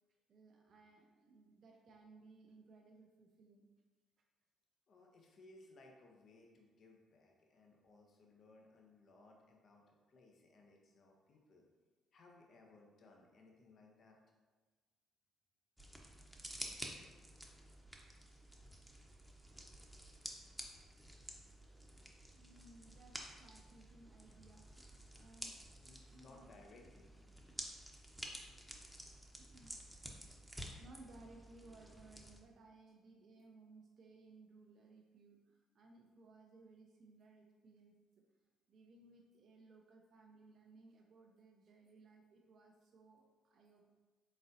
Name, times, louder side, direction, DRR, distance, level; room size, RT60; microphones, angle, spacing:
voice 1, 0.3-3.7 4.2-4.3 11.3-11.4 18.2-18.3 19.2-19.6 21.6-21.8 22.2-26.5 28.8-29.0 29.4-30.0 30.4-38.3 38.7-43.9, right 3 dB, 60° right, 0 dB, 0.5 m, -62 dB
voice 2, 4.9-11.7 12.1-14.2 19.6-19.7 25.8-27.1, left 2 dB, 55° left, 1 dB, 0.6 m, -63 dB
sound 1, 15.8-32.4, equal, 5° right, 0.7 m, -52 dB
4.0 x 3.8 x 2.6 m, 1.3 s
hypercardioid pair, 50°, 0 cm